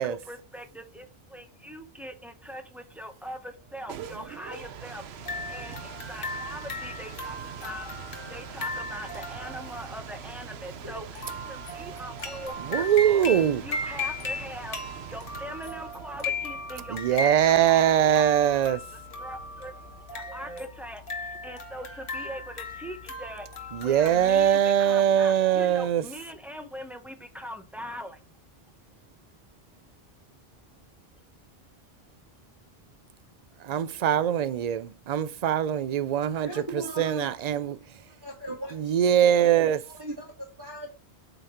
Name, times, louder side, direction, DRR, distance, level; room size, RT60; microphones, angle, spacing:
voice 1, 0.0-7.9 8.3-11.1 11.5-14.8 15.1-18.8 19.2-28.2, equal, ahead, 0.8 m, -42 dB
sound 1, 3.6-20.3, right 9 dB, 80° right, 0.9 m, -44 dB
sound 2, 5.1-24.5, left 2 dB, 60° left, 1.3 m, -37 dB
voice 2, 12.7-13.6 16.9-18.8 23.7-26.0 33.6-36.5 37.0-37.8 38.8-39.8, right 10 dB, 50° right, 0.5 m, -22 dB
voice 3, 36.4-37.3 38.1-39.5 39.9-40.9, right 1 dB, 20° right, 2.0 m, -39 dB
8.1 x 4.0 x 4.3 m
omnidirectional pair, 1.1 m